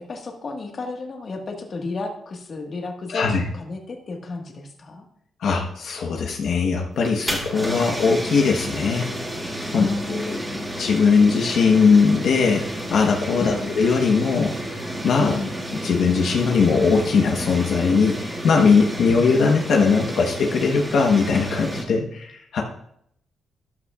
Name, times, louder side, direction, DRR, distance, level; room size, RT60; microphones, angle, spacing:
voice 1, 0.0-5.0 7.6-8.2 9.7-10.7 13.4-13.7 15.2-15.5, left 3 dB, 40° left, 2 dB, 1.6 m, -32 dB
voice 2, 3.1-3.4 5.4-9.1 9.7-10.4 10.8-15.4 15.8-22.6, left 5 dB, 70° left, 1 dB, 1.1 m, -20 dB
sound 1, 6.9-21.8, right 1 dB, 10° right, 2.1 m, -31 dB
13.5 x 11.5 x 2.4 m, 0.72 s
cardioid pair, 140°, 0 cm